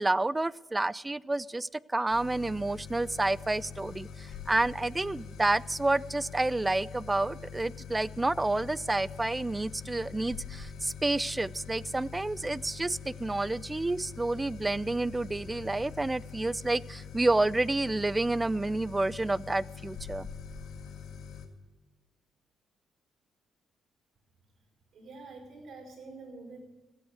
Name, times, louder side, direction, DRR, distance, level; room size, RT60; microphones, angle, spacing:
voice 1, 0.0-20.3, right 2 dB, 15° right, 22 dB, 0.3 m, -29 dB
sound 1, 2.1-21.5, left 6 dB, 75° left, 1.8 m, -44 dB
voice 2, 24.9-26.6, right 3 dB, 55° right, 2 dB, 5.1 m, -46 dB
16.0 x 8.1 x 8.1 m, 1.2 s
cardioid pair, 90°, 0 cm